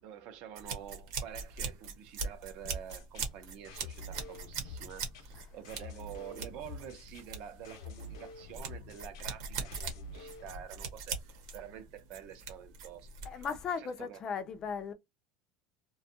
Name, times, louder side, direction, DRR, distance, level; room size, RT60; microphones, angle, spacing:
voice 1, 0.0-13.4 13.8-14.2, right 10 dB, 45° right, 0.6 m, -48 dB
sound 1, 0.6-13.7, right 5 dB, 80° right, 1.0 m, -41 dB
sound 2, 2.6-10.6, left 3 dB, 90° left, 0.8 m, -48 dB
voice 2, 13.3-14.9, left 6 dB, 25° left, 0.3 m, -37 dB
2.5 x 2.3 x 2.7 m
cardioid pair, 170°, 3 cm